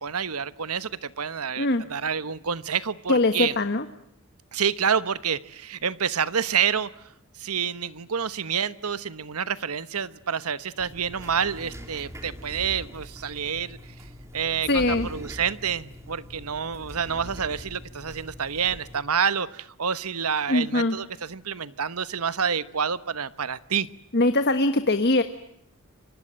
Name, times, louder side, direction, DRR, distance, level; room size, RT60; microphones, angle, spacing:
voice 1, 0.0-3.6 4.5-6.9 7.4-13.8 14.3-23.9, right 7 dB, 80° right, 15 dB, 1.1 m, -28 dB
voice 2, 3.1-3.8 14.7-15.1 20.5-21.0 24.1-25.2, left 2 dB, 50° left, 9 dB, 1.4 m, -22 dB
sound 1, 10.8-19.0, equal, 15° right, 2.8 m, -42 dB
29.0 x 24.0 x 7.6 m, 0.73 s
head